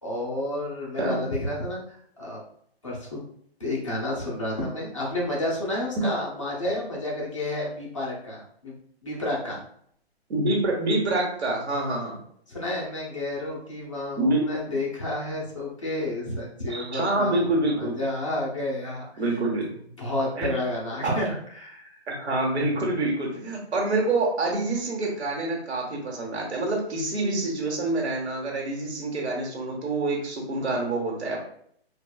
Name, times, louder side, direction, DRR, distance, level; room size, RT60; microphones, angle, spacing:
voice 1, 0.0-2.4 2.8-3.2 3.6-8.8 9.0-9.6 12.5-19.2 20.0-22.0, left 1 dB, 30° left, -4 dB, 0.7 m, -30 dB
voice 2, 10.3-12.2 14.2-14.8 16.7-17.9 19.2-19.7 20.4-20.5 21.0-21.1 22.1-31.4, right 2 dB, 90° right, -2 dB, 1.3 m, -26 dB
4.5 x 2.3 x 2.2 m, 0.65 s
hypercardioid pair, 180°, 32 cm